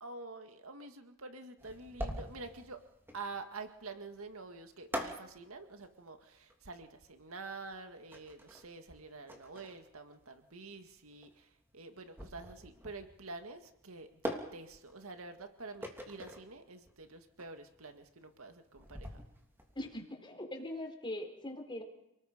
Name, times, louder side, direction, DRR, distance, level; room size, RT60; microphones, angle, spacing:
voice 1, 0.0-2.8 3.1-19.2, right 3 dB, 85° right, 7 dB, 2.0 m, -48 dB
sound 1, 1.6-19.9, equal, 10° right, 3.1 m, -45 dB
voice 2, 19.8-21.8, left 1 dB, 25° left, 4 dB, 4.0 m, -41 dB
29.5 x 19.5 x 5.2 m, 0.84 s
head